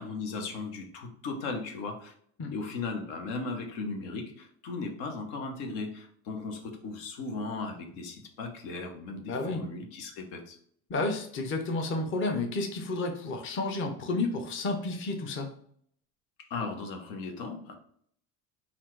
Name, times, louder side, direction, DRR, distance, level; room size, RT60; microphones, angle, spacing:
voice 1, 0.0-2.1 2.5-10.6 16.5-17.8, left 3 dB, 75° left, 3 dB, 1.1 m, -37 dB
voice 2, 9.3-9.6 10.9-15.5, left 2 dB, 30° left, 4 dB, 0.7 m, -31 dB
4.2 x 2.5 x 4.5 m, 0.62 s
supercardioid pair, 100°, 42 cm